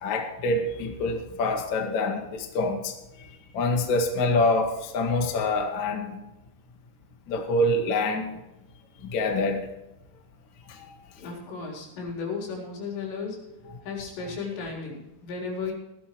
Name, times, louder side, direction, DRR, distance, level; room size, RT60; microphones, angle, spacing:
voice 1, 0.0-2.9 3.5-6.1 7.3-8.3 9.0-9.7 10.8-10.9, left 2 dB, 45° left, 3 dB, 1.6 m, -26 dB
voice 2, 11.2-13.4 13.8-15.7, left 4 dB, 80° left, -1 dB, 6.3 m, -34 dB
18.0 x 13.0 x 3.1 m, 0.93 s
omnidirectional pair, 5.0 m